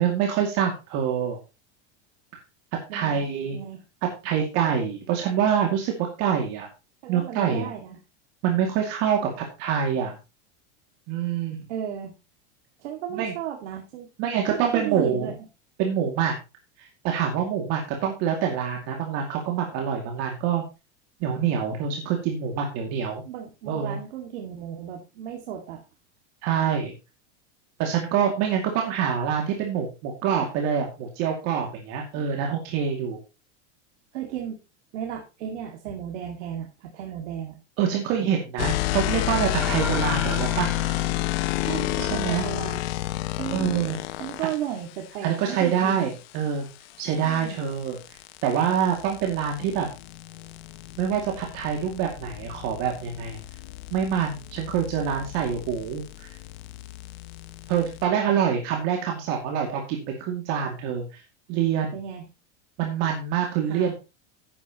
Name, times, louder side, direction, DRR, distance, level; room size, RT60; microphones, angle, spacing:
voice 1, 0.0-1.4 2.9-3.6 4.0-6.7 7.1-7.7 8.4-10.2 11.1-11.6 13.1-13.4 14.2-15.3 15.8-16.3 16.8-20.6 21.2-23.2 23.7-24.0 26.4-26.9 27.8-33.2 37.8-41.0 42.0-42.5 43.5-44.0 45.2-46.7 47.0-48.0 48.4-49.9 51.0-53.4 53.9-56.3 57.7-61.2 61.5-61.9 62.8-63.9, right 8 dB, 45° right, 1 dB, 2.4 m, -26 dB
voice 2, 2.9-3.2 3.5-3.8 7.0-8.0 11.7-12.1 12.8-14.1 14.5-15.4 23.2-25.8 34.1-34.6 34.9-37.6 41.6-42.8 43.4-43.9 44.2-46.1 47.1-47.6 61.9-62.2 63.7-63.9, right 9 dB, 75° right, 1 dB, 2.3 m, -34 dB
sound 1, 38.6-44.6 47.0-58.1, left 17 dB, 55° left, 0.8 m, -31 dB
sound 2, 39.6-42.2, right 2 dB, 5° right, 0.4 m, -37 dB
12.5 x 9.4 x 3.0 m, 0.28 s
supercardioid pair, 155°, 35 cm